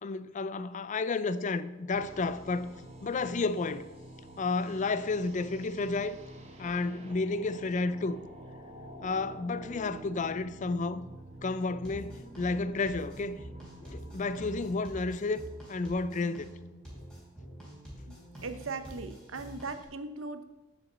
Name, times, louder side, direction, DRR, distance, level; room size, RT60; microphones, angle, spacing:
voice 1, 0.0-2.7 3.0-3.9 4.4-6.2 6.6-8.2 9.0-11.1 11.4-13.4 13.8-15.4 15.7-16.5, left 3 dB, 40° left, 0.4 m, -31 dB
sound 1, 1.9-16.0, right 1 dB, 35° right, 1.2 m, -48 dB
sound 2, 11.8-19.9, right 1 dB, 5° left, 3.5 m, -46 dB
voice 2, 18.4-20.4, right 3 dB, 75° right, 0.8 m, -38 dB
7.1 x 6.5 x 7.4 m
head